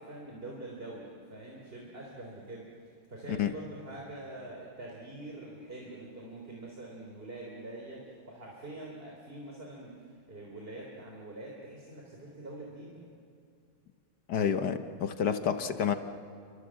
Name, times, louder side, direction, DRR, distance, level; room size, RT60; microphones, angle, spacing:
voice 1, 0.0-2.7 3.1-13.0 15.3-15.6, right 2 dB, 30° right, -2 dB, 3.7 m, -45 dB
voice 2, 14.3-15.9, left 8 dB, 65° left, 8 dB, 1.6 m, -29 dB
29.5 x 25.0 x 7.7 m, 2.3 s
omnidirectional pair, 2.0 m